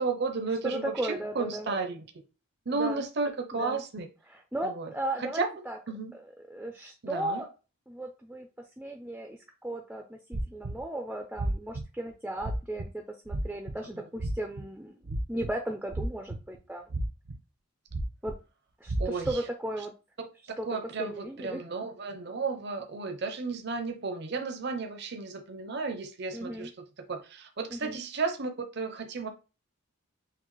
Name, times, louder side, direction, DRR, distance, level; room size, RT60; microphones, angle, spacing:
voice 1, 0.0-2.0 2.7-4.1 4.6-4.9 5.2-5.5 5.9-6.1 7.0-7.4 19.0-19.4 20.7-29.3, right 4 dB, 50° right, 0.6 m, -33 dB
voice 2, 0.6-1.7 2.7-3.0 3.5-3.8 4.3-5.8 6.1-7.5 7.9-8.5 8.8-15.0 15.3-16.9 18.2-18.3 18.8-19.9 20.6-21.6 26.3-26.7 27.7-28.0, right 1 dB, 5° right, 0.4 m, -36 dB
sound 1, 10.3-10.8 11.4-11.8 12.4-12.9 13.3-13.7 14.2-14.6 15.0-15.5 15.9-16.6 16.9-17.3 17.9-18.3 18.9-19.3, right 1 dB, 75° right, 0.9 m, -31 dB
5.8 x 2.4 x 3.1 m
head